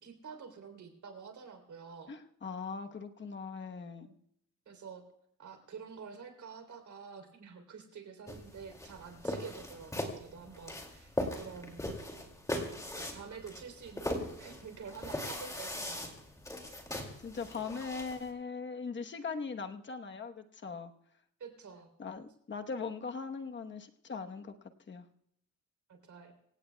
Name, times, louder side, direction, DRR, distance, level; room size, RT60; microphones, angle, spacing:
voice 1, 0.0-2.1 4.0-4.2 4.6-5.0 5.4-11.8 12.1-12.3 12.9-16.1 21.4-21.9 25.9-26.3, right 6 dB, 60° right, 6 dB, 3.4 m, -48 dB
voice 2, 2.1-4.1 17.2-20.9 22.0-24.5 24.9-25.1, left 5 dB, 35° left, 6 dB, 1.1 m, -40 dB
sound 1, 8.3-18.3, left 1 dB, 10° left, 2.4 m, -40 dB
26.0 x 17.0 x 2.3 m, 0.74 s
wide cardioid pair, 180°, 32 cm